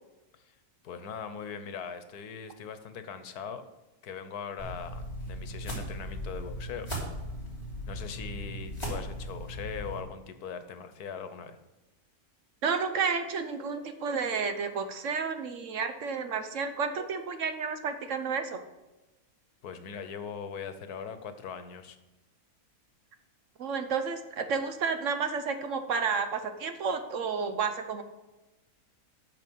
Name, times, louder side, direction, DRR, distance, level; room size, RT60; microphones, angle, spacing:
voice 1, 0.8-3.6 4.0-6.9 7.9-11.6 19.6-22.0, left 6 dB, 90° left, 10 dB, 1.4 m, -40 dB
sound 1, 4.6-10.0, equal, 15° left, 3.3 m, -38 dB
voice 2, 12.6-18.6 23.6-28.0, right 5 dB, 60° right, 8 dB, 1.1 m, -31 dB
9.0 x 6.6 x 6.2 m, 1.0 s
omnidirectional pair, 1.6 m